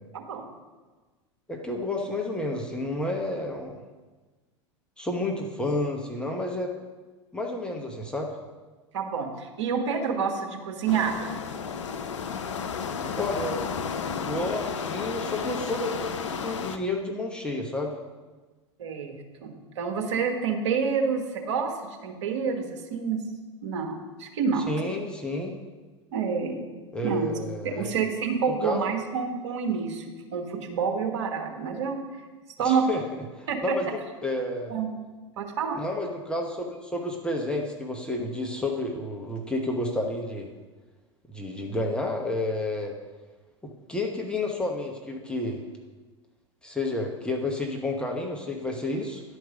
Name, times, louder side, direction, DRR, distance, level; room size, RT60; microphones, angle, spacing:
voice 1, 0.1-0.5 8.9-11.3 18.8-21.7 22.0-23.2 23.6-24.6 26.1-26.6 27.0-27.3 27.6-30.0 30.3-32.0 32.6-32.8 33.5-33.8 34.7-34.9 35.4-35.8, right 6 dB, 65° right, 2 dB, 1.4 m, -28 dB
voice 2, 1.5-3.8 5.0-6.7 7.3-8.3 13.2-13.7 14.2-17.9 24.7-25.6 26.9-28.0 28.6-28.8 32.6-34.7 35.7-40.5 41.3-42.9 43.6-45.6 46.6-49.2, left 2 dB, 5° left, 0 dB, 1.0 m, -30 dB
sound 1, 10.9-16.8, left 6 dB, 75° left, 0.6 m, -32 dB
10.5 x 4.7 x 5.0 m, 1.3 s
figure-of-eight pair, 85°, 16 cm